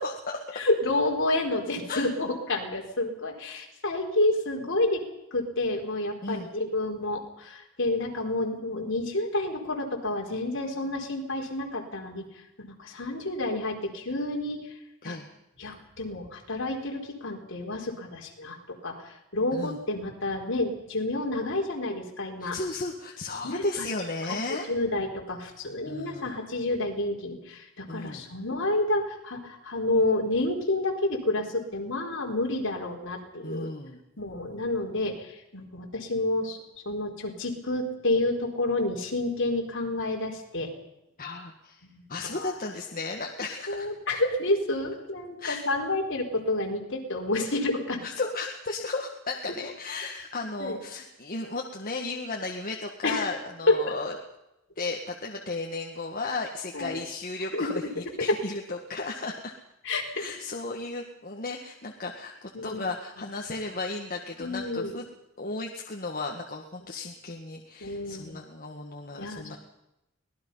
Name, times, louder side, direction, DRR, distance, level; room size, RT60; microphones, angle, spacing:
voice 1, 0.0-0.7 1.9-2.1 6.2-6.5 15.0-15.3 19.5-19.8 22.4-24.7 25.8-26.4 27.9-28.3 33.4-34.0 41.2-41.8 42.1-43.9 45.4-45.6 48.0-54.2 54.8-59.6 60.1-65.1 65.4-69.6, left 3 dB, 40° left, 1 dB, 1.7 m, -34 dB
voice 2, 0.5-5.0 5.3-14.6 15.0-15.2 15.6-22.6 23.4-23.6 24.7-33.7 34.2-36.6 36.8-40.7 41.8-42.5 43.7-48.0 50.6-50.8 53.0-53.3 53.7-53.8 56.7-57.0 57.5-57.7 58.3-58.4 59.8-60.2 62.5-62.8 64.4-64.9 67.8-68.4 69.2-69.6, left 2 dB, 60° left, 0 dB, 4.4 m, -29 dB
24.5 x 18.5 x 5.7 m, 0.89 s
head